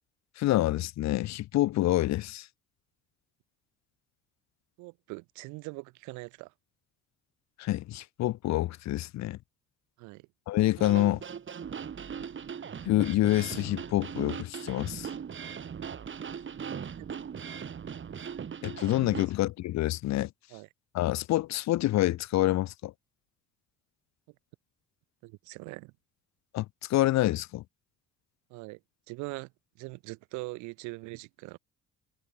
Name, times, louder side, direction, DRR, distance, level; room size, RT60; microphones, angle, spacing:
voice 1, 0.4-2.5 7.6-9.4 10.5-11.2 12.8-15.1 18.6-20.3 20.9-22.9 26.5-26.6 26.9-27.6, left 15 dB, 65° left, 1.4 m, -27 dB
voice 2, 4.8-6.5 10.0-10.3 17.0-17.1 20.5-20.7 25.2-25.9 28.5-28.8 29.1-29.5 29.8-31.6, right 25 dB, 75° right, 1.5 m, -42 dB
sound 1, 10.8-19.3, right 7 dB, 40° right, 3.3 m, -39 dB
hypercardioid pair, 65°, 30 cm